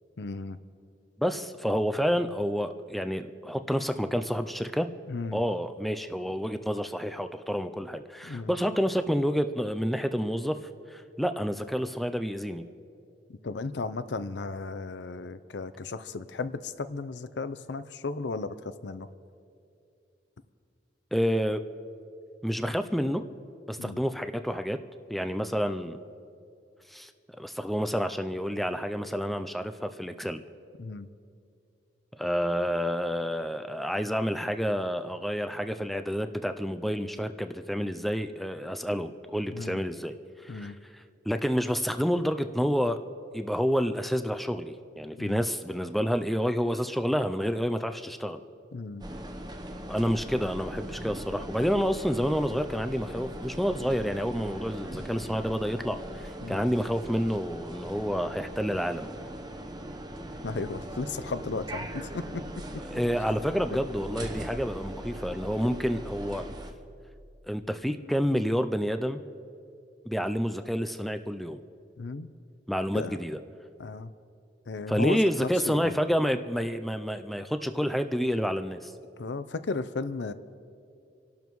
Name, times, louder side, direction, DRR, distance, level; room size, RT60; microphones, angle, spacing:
voice 1, 0.2-0.6 5.1-5.4 8.2-8.5 13.3-19.1 23.8-24.0 30.8-31.1 39.5-39.8 40.5-40.8 45.2-45.4 48.7-49.0 56.4-56.6 60.4-62.8 72.0-72.3 72.9-73.2 73.8-74.1 74.7-75.9 79.2-80.3, left 3 dB, 75° left, 14 dB, 0.6 m, -35 dB
voice 2, 1.2-4.9 5.3-10.6 10.9-12.6 21.1-21.6 22.4-23.2 23.7-24.8 25.1-26.0 26.9-27.1 27.4-30.4 32.2-40.1 40.4-40.7 41.3-43.0 43.3-48.4 49.9-59.1 62.9-66.4 67.5-69.2 70.1-71.6 72.7-73.4 74.9-78.9, equal, ahead, 8 dB, 0.4 m, -29 dB
sound 1, 49.0-66.7, right 1 dB, 25° right, 0.9 m, -40 dB
27.0 x 12.0 x 3.1 m, 2.5 s
head